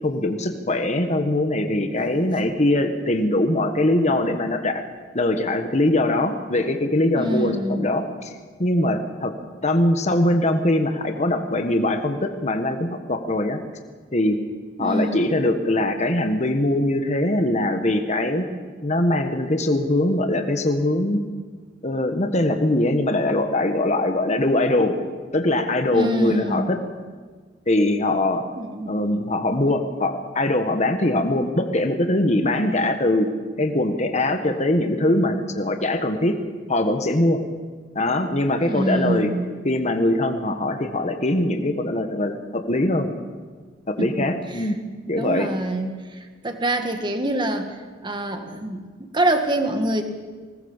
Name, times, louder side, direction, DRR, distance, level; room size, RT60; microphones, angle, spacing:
voice 1, 0.0-4.8 5.1-9.3 9.6-13.6 14.1-14.4 14.8-18.5 18.8-21.2 21.8-25.0 25.3-26.8 27.7-28.4 28.9-33.3 33.6-36.4 36.7-37.4 37.9-39.3 39.6-43.1 43.9-44.8 45.1-45.5, left 1 dB, 35° left, 6 dB, 1.4 m, -22 dB
voice 2, 7.1-7.9 14.8-15.3 25.9-26.6 28.6-29.2 38.5-39.5 44.0-44.1 44.5-44.7 45.1-50.0, right 1 dB, 25° right, 6 dB, 1.9 m, -25 dB
20.5 x 18.5 x 7.3 m, 1.5 s
head